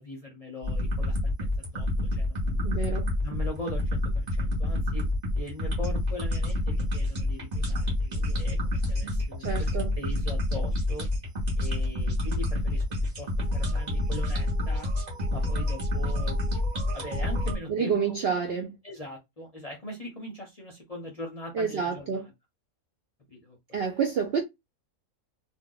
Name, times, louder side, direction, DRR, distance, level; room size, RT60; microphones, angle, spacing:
voice 1, 0.0-2.6 3.2-5.0 5.3-9.7 10.0-11.1 11.6-12.8 13.2-14.9 15.3-16.6 16.9-18.2 18.8-22.3 23.3-23.8, left 1 dB, 35° left, 0.6 m, -41 dB
sound 1, 0.6-17.6, left 1 dB, 30° right, 1.0 m, -28 dB
voice 2, 2.6-3.1 9.0-9.2 9.4-9.9 17.7-18.7 21.5-22.2 23.7-24.4, right 6 dB, 60° right, 0.6 m, -28 dB
2.7 x 2.2 x 3.7 m
omnidirectional pair, 1.6 m